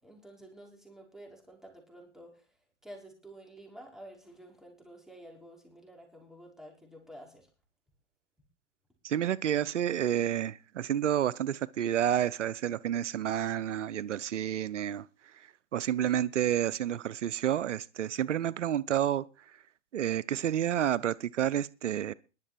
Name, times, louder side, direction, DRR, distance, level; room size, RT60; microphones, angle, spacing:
voice 1, 0.0-2.5 2.8-7.5, right 1 dB, ahead, 5.5 m, -50 dB
voice 2, 9.0-15.1 15.4-19.3 19.9-22.1, right 10 dB, 85° right, 0.7 m, -30 dB
22.0 x 7.6 x 4.5 m
hypercardioid pair, 120°, 35 cm